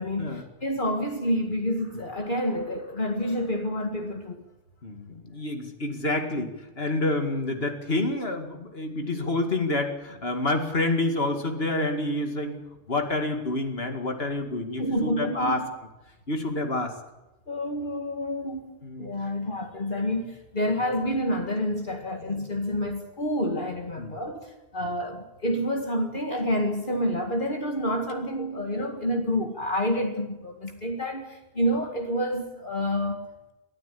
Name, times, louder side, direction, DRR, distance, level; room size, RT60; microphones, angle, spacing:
voice 1, 0.0-4.4 14.8-15.7 17.5-18.7 19.0-33.3, equal, 55° left, 2.1 m, -28 dB
voice 2, 4.8-12.6 12.9-15.6 16.3-16.9 18.8-19.3 22.2-22.5 24.0-24.1, left 2 dB, 75° left, 2.6 m, -28 dB
23.5 x 14.0 x 8.5 m
omnidirectional pair, 1.0 m